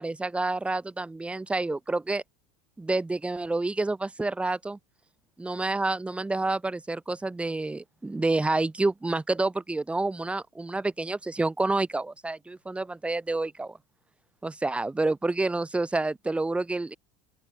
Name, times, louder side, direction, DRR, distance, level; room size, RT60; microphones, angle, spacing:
voice 1, 0.0-2.2 2.8-4.8 5.4-13.8 14.4-16.9, right 2 dB, 10° right, 6.6 m, -28 dB
open air
supercardioid pair, 140°, 14 cm